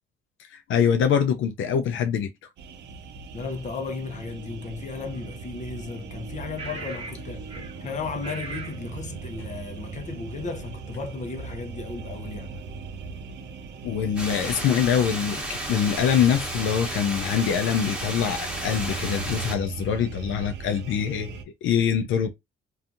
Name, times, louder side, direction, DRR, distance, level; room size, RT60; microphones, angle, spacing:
voice 1, 0.5-2.3 7.6-7.7 13.8-22.3, left 8 dB, 75° left, 0.5 m, -24 dB
sound 1, 2.6-21.4, right 5 dB, 65° right, 0.5 m, -39 dB
voice 2, 3.3-7.5 7.8-12.6, left 4 dB, 35° left, 0.7 m, -35 dB
sound 2, 5.1-5.2 6.6-7.2 7.5-7.8 8.2-8.8, right 3 dB, 30° right, 1.0 m, -38 dB
sound 3, 14.2-19.5, right 1 dB, 5° right, 1.2 m, -33 dB
2.6 x 2.4 x 2.4 m
cardioid pair, 90°, 20 cm